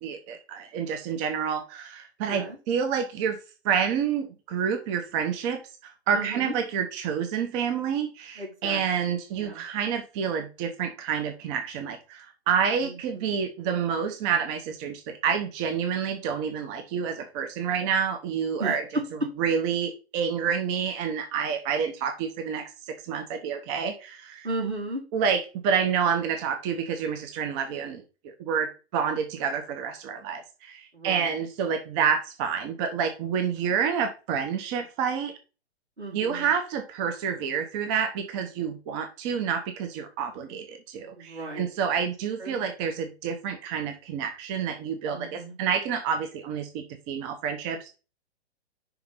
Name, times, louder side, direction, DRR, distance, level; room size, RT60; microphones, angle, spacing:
voice 1, 0.0-3.4 3.6-18.8 19.4-24.5 25.1-35.3 36.1-48.0, right 7 dB, 25° right, 6 dB, 0.9 m, -28 dB
voice 2, 2.2-2.6 6.1-6.5 8.4-9.6 12.8-13.4 18.6-19.0 24.4-25.0 30.9-31.3 36.0-36.5 41.2-41.7 41.9-42.0 42.4-42.7 45.1-45.5, right 2 dB, 85° right, -4 dB, 4.4 m, -35 dB
5.9 x 4.2 x 5.6 m, 0.32 s
figure-of-eight pair, 120°, 33 cm